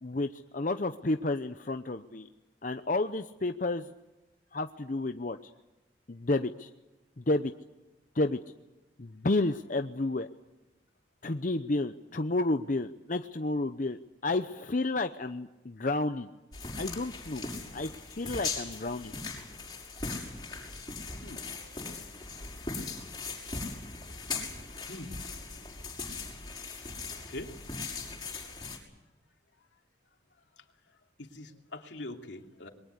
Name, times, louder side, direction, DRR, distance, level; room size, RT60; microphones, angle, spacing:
voice 1, 0.0-2.3 2.6-3.9 4.5-5.4 6.1-6.7 7.2-7.5 8.1-8.4 9.0-10.3 11.2-16.3 16.8-17.4 17.7-19.1, left 2 dB, 45° left, 8 dB, 0.8 m, -31 dB
sound 1, 16.5-28.8, left 4 dB, 25° left, 6.0 m, -39 dB
voice 2, 24.9-25.2 27.3-27.5 30.6-30.7 31.2-32.7, left 1 dB, 80° left, 3 dB, 2.8 m, -43 dB
27.5 x 22.5 x 8.1 m, 1.0 s
head